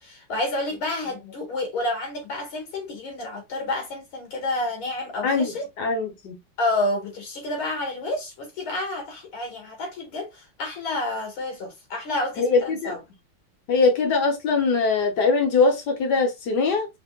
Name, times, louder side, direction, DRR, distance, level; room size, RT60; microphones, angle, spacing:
voice 1, 0.0-5.7 6.6-13.0, left 2 dB, 80° left, 2.6 m, -29 dB
voice 2, 5.2-6.4 12.4-13.0 13.7-16.9, left 4 dB, 55° left, 1.8 m, -22 dB
5.5 x 3.5 x 2.2 m
omnidirectional pair, 2.3 m